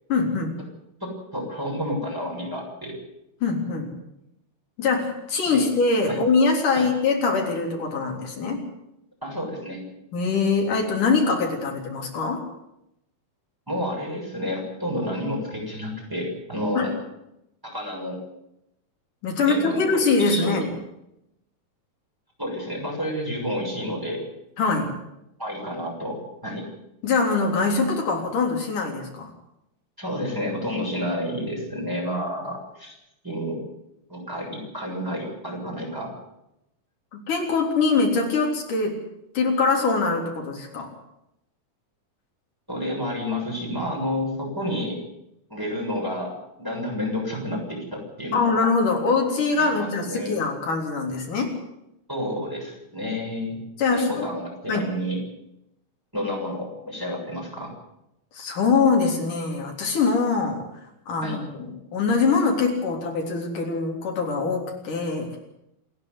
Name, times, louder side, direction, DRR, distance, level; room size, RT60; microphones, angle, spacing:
voice 1, 0.1-0.6 3.4-3.9 4.8-8.6 10.1-12.4 16.8-16.9 19.2-20.7 24.6-24.9 27.0-29.3 37.1-39.0 39.4-40.9 48.3-51.5 53.8-54.3 54.7-54.9 58.3-60.6 61.1-65.4, left 4 dB, 85° left, 1 dB, 5.1 m, -23 dB
voice 2, 1.0-2.9 5.4-5.6 6.1-6.2 6.8-6.9 9.2-9.8 13.7-16.9 17.6-18.2 19.5-20.7 22.4-24.2 25.4-26.6 30.0-32.9 33.2-33.6 34.1-36.1 42.7-45.0 45.5-48.5 49.5-50.4 52.1-53.6 53.9-55.2 56.1-57.7 61.2-61.4, left 1 dB, 5° right, -2 dB, 7.2 m, -30 dB
28.0 x 10.5 x 9.6 m, 0.84 s
omnidirectional pair, 3.6 m